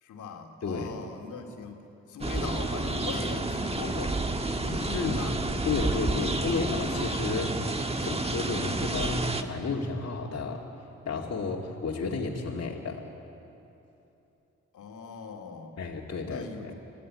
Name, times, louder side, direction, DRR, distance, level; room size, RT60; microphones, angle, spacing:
voice 1, 0.0-4.2 4.6-5.4 6.1-6.5 14.7-15.7 16.2-16.7, left 5 dB, 80° left, 3 dB, 2.4 m, -40 dB
voice 2, 0.6-1.0 4.9-5.3 5.6-10.7 11.1-13.1 15.8-16.7, left 4 dB, 55° left, -3 dB, 2.5 m, -32 dB
sound 1, 2.2-9.4, right 2 dB, 20° right, 1.5 m, -30 dB
25.5 x 16.0 x 9.5 m, 2.9 s
cardioid pair, 65°, 30 cm